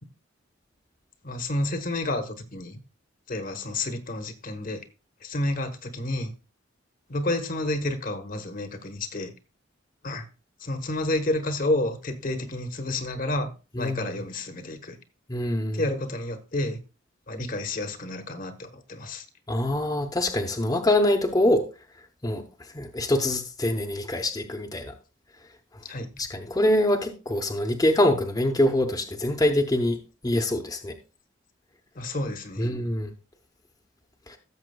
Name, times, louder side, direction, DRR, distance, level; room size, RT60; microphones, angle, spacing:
voice 1, 1.2-2.8 3.3-4.9 5.2-6.3 7.1-9.3 10.0-10.3 10.6-13.5 13.8-15.0 15.7-16.8 17.3-19.3 25.8-26.1 31.9-32.7, left 1 dB, 45° left, 1.1 m, -30 dB
voice 2, 15.3-15.8 19.5-21.6 22.2-22.4 22.7-24.9 26.2-30.0 30.2-30.9 32.6-33.1 34.3-34.4, left 1 dB, 20° left, 0.8 m, -24 dB
16.0 x 7.2 x 2.3 m
head